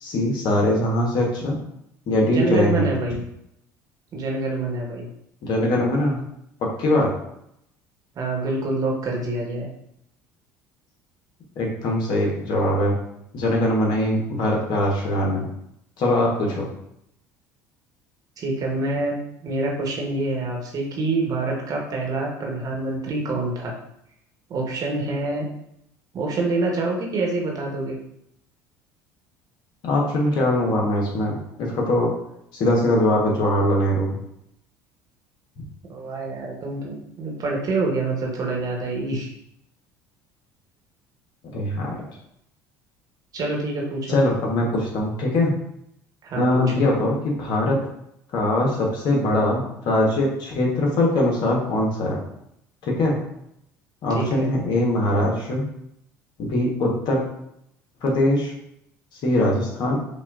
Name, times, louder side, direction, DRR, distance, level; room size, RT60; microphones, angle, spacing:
voice 1, 0.0-1.6 2.1-2.9 5.4-6.2 6.6-7.1 11.6-13.0 13.3-15.5 16.0-16.7 29.8-32.1 32.5-34.2 41.5-42.1 44.1-45.5 46.3-47.8 48.3-52.2 52.8-53.2 54.0-55.6 56.4-57.2 58.0-58.5 59.2-60.0, left 1 dB, 60° left, -1 dB, 1.1 m, -22 dB
voice 2, 2.3-3.2 4.1-5.1 8.1-9.7 18.4-23.7 24.5-25.5 26.1-28.0 35.9-39.3 43.3-44.2 46.2-46.7 54.1-54.5, right 2 dB, 45° right, -1 dB, 1.2 m, -26 dB
5.4 x 2.4 x 2.5 m, 0.76 s
hypercardioid pair, 70°, 9 cm